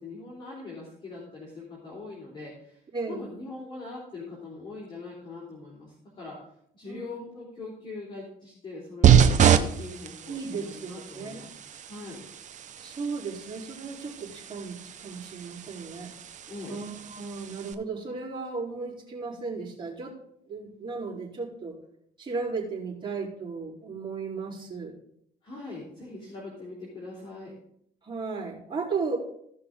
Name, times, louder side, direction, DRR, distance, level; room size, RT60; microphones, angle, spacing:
voice 1, 0.0-2.8 3.1-6.4 6.7-11.5 11.8-12.2 16.5-16.8 25.4-27.6, left 3 dB, 30° left, -6 dB, 3.4 m, -42 dB
voice 2, 2.9-3.3 6.9-7.2 10.2-11.5 12.8-16.1 16.7-20.1 20.5-21.7 22.2-24.9 28.0-29.2, right 4 dB, 30° right, -4 dB, 3.8 m, -35 dB
sound 1, 9.0-17.7, right 8 dB, 45° right, 0.8 m, -26 dB
16.0 x 5.6 x 3.7 m, 0.71 s
cardioid pair, 110°, 17 cm